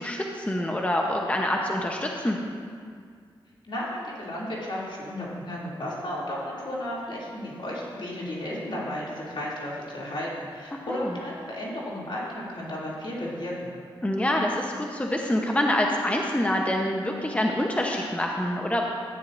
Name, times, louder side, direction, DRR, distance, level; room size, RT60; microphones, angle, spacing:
voice 1, 0.0-2.4 10.9-11.1 14.0-18.9, left 1 dB, 15° left, 1 dB, 0.9 m, -26 dB
voice 2, 3.6-13.8, left 1 dB, 60° left, -6 dB, 2.9 m, -33 dB
13.5 x 9.8 x 2.6 m, 2.1 s
cardioid pair, 45°, 9 cm